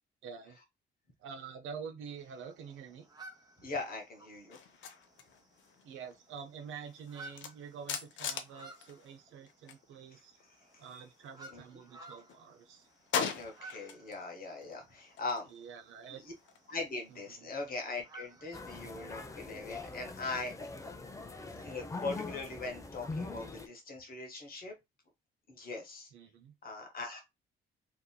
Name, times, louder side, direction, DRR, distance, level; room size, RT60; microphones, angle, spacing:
voice 1, 0.2-0.6 1.2-3.1 5.8-10.3 10.8-12.9 15.5-16.2 17.1-17.5 26.1-26.5, right 6 dB, 80° right, 0.7 m, -47 dB
sound 1, 2.2-19.1, right 2 dB, 20° right, 1.0 m, -56 dB
voice 2, 3.6-4.6 10.7-10.8 11.5-11.6 13.3-15.5 16.1-16.3 16.7-20.6 21.5-24.7 25.5-26.1 26.6-27.2, left 3 dB, 50° left, 1.2 m, -40 dB
sound 2, 4.5-9.8 10.1-11.7 12.1-14.2 14.5-17.3, left 7 dB, 75° left, 0.6 m, -42 dB
sound 3, 18.5-23.7, left 3 dB, 15° left, 0.5 m, -43 dB
2.8 x 2.6 x 2.2 m
cardioid pair, 90°, 20 cm